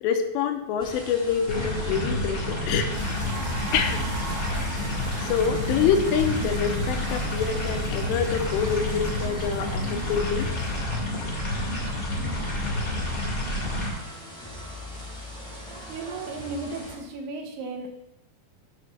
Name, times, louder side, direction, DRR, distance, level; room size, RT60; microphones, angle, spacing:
voice 1, 0.0-3.3 3.7-4.0 5.2-10.5, left 7 dB, 85° left, 6 dB, 2.9 m, -26 dB
sound 1, 0.8-16.9, equal, 5° left, 1.0 m, -40 dB
sound 2, 1.5-13.9, left 1 dB, 50° left, 1.1 m, -29 dB
sound 3, 2.9-11.0, right 2 dB, 30° right, 1.3 m, -41 dB
voice 2, 15.9-17.9, right 3 dB, 75° right, 2 dB, 2.7 m, -35 dB
8.4 x 4.1 x 6.4 m, 0.93 s
omnidirectional pair, 5.0 m